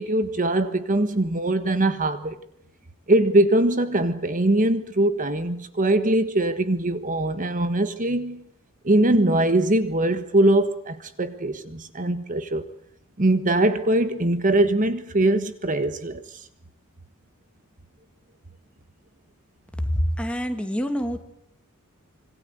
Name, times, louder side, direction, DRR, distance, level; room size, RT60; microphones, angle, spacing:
voice 1, 0.0-2.4 3.1-8.4 8.8-12.7 13.2-16.5, right 1 dB, 35° right, 1.4 m, -22 dB
voice 2, 19.8-21.2, equal, 5° left, 2.5 m, -26 dB
26.5 x 25.0 x 8.1 m
head